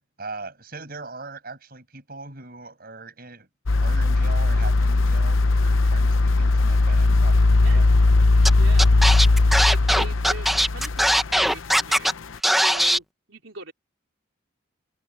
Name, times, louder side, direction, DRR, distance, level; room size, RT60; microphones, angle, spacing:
voice 1, 0.0-3.5 3.8-7.9, right 3 dB, 50° right, 7.3 m, -40 dB
sound 1, 3.7-11.9 12.3-12.4, left 2 dB, 90° left, 0.8 m, -19 dB
Scratching (performance technique), 8.5-8.6 8.8-12.1 12.4-13.0, equal, ahead, 1.0 m, -20 dB
voice 2, 8.6-8.9 9.6-12.1 12.5-13.7, right 3 dB, 80° right, 3.6 m, -40 dB
head